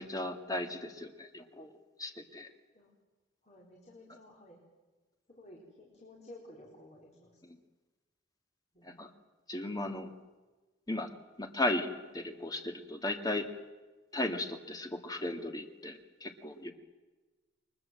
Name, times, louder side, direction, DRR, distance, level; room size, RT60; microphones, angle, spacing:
voice 1, 0.0-2.5 8.8-9.1 9.5-10.1 10.9-11.1 11.4-13.5 14.1-16.7, left 1 dB, 20° left, 5 dB, 2.2 m, -36 dB
voice 2, 3.4-4.6 5.3-7.4 8.7-9.0, left 1 dB, 40° left, -2 dB, 4.6 m, -54 dB
29.5 x 23.0 x 7.8 m, 1.2 s
head